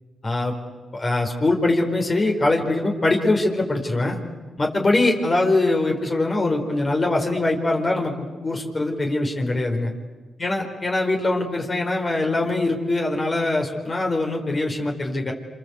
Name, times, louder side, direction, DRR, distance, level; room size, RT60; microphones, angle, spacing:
voice 1, 0.2-0.5 0.9-4.2 4.6-9.9 10.4-15.3, left 2 dB, 40° left, 1 dB, 4.8 m, -22 dB
28.5 x 25.5 x 8.3 m, 1.3 s
supercardioid pair, 55°, 0 cm